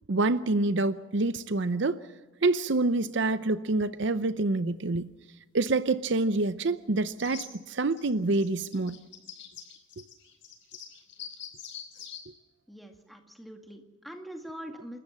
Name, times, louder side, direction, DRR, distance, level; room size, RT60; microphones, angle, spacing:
voice 1, 0.1-2.0 2.4-5.1 5.5-9.0, right 2 dB, 60° right, 13 dB, 0.7 m, -27 dB
sound 1, 7.2-7.5 7.9-12.2, left 8 dB, 60° left, 4.9 m, -44 dB
voice 2, 12.7-15.0, equal, ahead, 4 dB, 2.1 m, -43 dB
28.5 x 14.0 x 7.4 m, 1.2 s
head